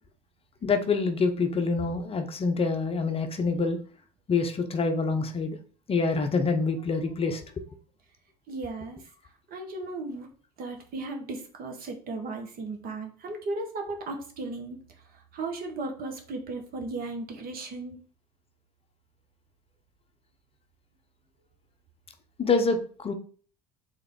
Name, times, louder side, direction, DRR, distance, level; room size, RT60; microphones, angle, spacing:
voice 1, 0.6-3.8 4.3-5.6 5.9-7.4 22.4-23.1, left 4 dB, 30° left, 6 dB, 0.7 m, -26 dB
voice 2, 8.5-9.0 9.5-10.3 10.6-14.8 15.0-18.0, right 2 dB, 45° right, 3 dB, 1.2 m, -36 dB
3.5 x 3.3 x 3.7 m, 0.43 s
figure-of-eight pair, 65°, 21 cm